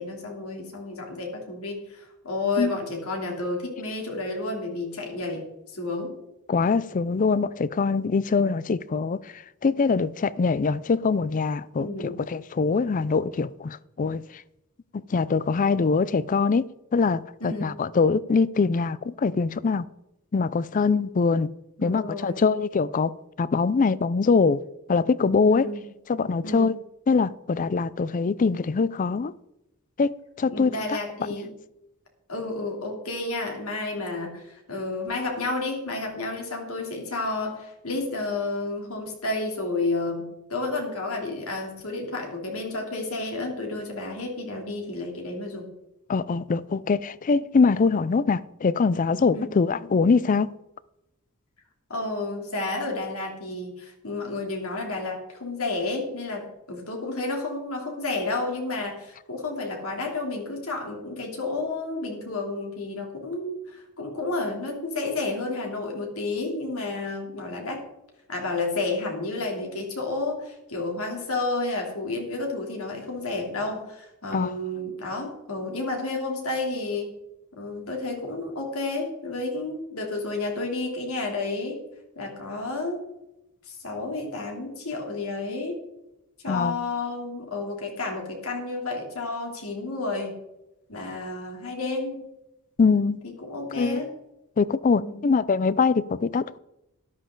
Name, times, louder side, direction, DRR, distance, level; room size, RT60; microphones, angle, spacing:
voice 1, 0.0-6.1 11.8-12.2 17.4-17.7 21.8-22.4 25.5-25.8 26.4-26.7 30.5-31.5 32.3-45.7 49.3-49.5 51.9-67.8 68.3-77.1 77.6-81.8 82.1-83.0 83.7-85.8 86.4-90.3 90.9-92.2 93.5-94.1 94.9-95.2, left 2 dB, 70° left, 3.2 m, -31 dB
voice 2, 6.5-14.2 15.1-19.9 20.3-21.5 21.8-23.1 23.4-24.6 24.9-25.7 26.1-26.7 27.1-29.3 30.0-31.0 46.1-50.5 74.3-74.5 86.5-86.8 92.8-93.2 93.8-94.0 94.6-96.6, left 4 dB, 35° left, 0.4 m, -23 dB
13.0 x 11.5 x 3.9 m
head